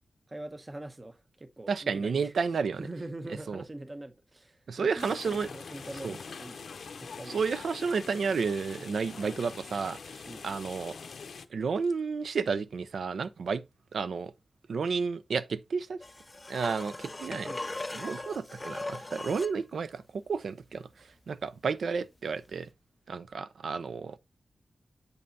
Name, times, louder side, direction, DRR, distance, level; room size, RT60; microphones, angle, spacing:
voice 1, 0.3-7.4 10.2-10.5 17.4-17.9, right 1 dB, 30° right, 0.7 m, -44 dB
voice 2, 1.7-2.8 3.5-3.6 4.7-5.5 6.0-6.2 7.3-10.0 10.4-10.9 11.5-13.6 13.9-14.3 14.7-16.0 16.5-17.5 17.9-20.8 21.3-22.7 23.1-24.2, right 5 dB, 85° right, 0.5 m, -31 dB
sound 1, 5.0-11.5, left 5 dB, 80° left, 0.6 m, -44 dB
sound 2, 16.0-19.6 22.5-22.6, left 2 dB, 25° left, 0.4 m, -39 dB
7.9 x 5.4 x 2.7 m
wide cardioid pair, 90°, 0 cm